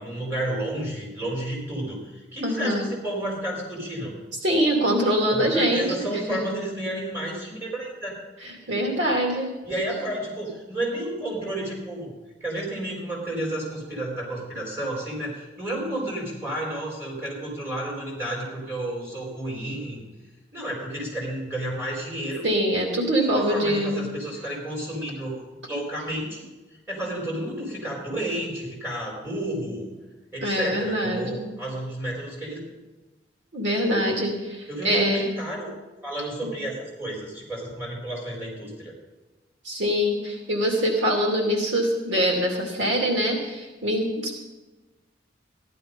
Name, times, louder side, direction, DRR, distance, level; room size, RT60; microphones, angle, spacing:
voice 1, 0.0-4.1 5.3-8.1 9.6-12.1 12.4-20.0 20.5-22.5 23.2-25.4 25.7-26.4 26.9-29.9 30.3-32.6 34.7-35.7 36.0-38.9, right 1 dB, 10° right, -3 dB, 4.2 m, -31 dB
voice 2, 2.4-2.9 4.4-6.4 8.4-9.5 22.4-24.1 30.4-31.4 33.5-35.4 36.4-36.5 39.6-44.3, equal, 80° right, 1 dB, 2.5 m, -24 dB
14.5 x 11.0 x 5.3 m, 1.1 s
head